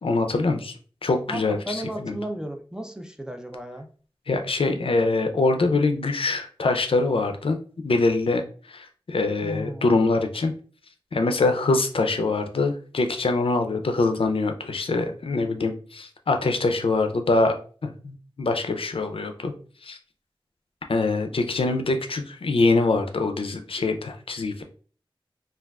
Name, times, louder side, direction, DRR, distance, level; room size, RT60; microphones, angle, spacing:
voice 1, 0.0-0.7 1.0-2.2 4.3-7.6 7.8-8.4 8.7-10.5 11.1-17.6 17.8-19.5 19.8-20.0 20.9-24.6, left 3 dB, 80° left, 6 dB, 0.4 m, -24 dB
voice 2, 1.3-3.9 9.4-10.0, right 1 dB, 10° right, 5 dB, 0.4 m, -34 dB
3.4 x 2.3 x 2.2 m, 0.41 s
wide cardioid pair, 55°, 9 cm